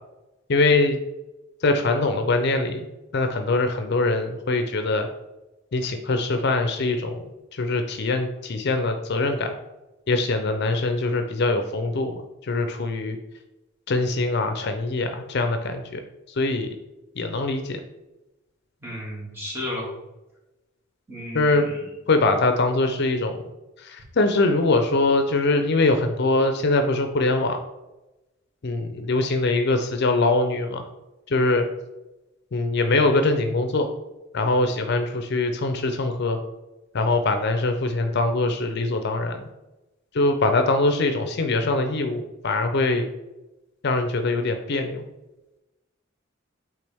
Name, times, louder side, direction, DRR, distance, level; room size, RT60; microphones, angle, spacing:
voice 1, 0.5-1.0 1.6-2.9 3.1-5.1 5.7-7.2 7.5-9.5 10.1-13.2 13.9-16.0 16.3-16.7 17.2-17.8 21.3-21.6 22.1-23.4 23.8-27.6 28.6-30.8 31.3-31.7 32.5-33.9 34.3-36.4 36.9-39.5 40.1-43.1 43.8-45.0, left 2 dB, 55° left, 7 dB, 0.5 m, -23 dB
voice 2, 18.8-19.9 21.1-21.8, left 1 dB, 10° right, -5 dB, 2.1 m, -33 dB
8.3 x 3.4 x 3.4 m, 1.0 s
head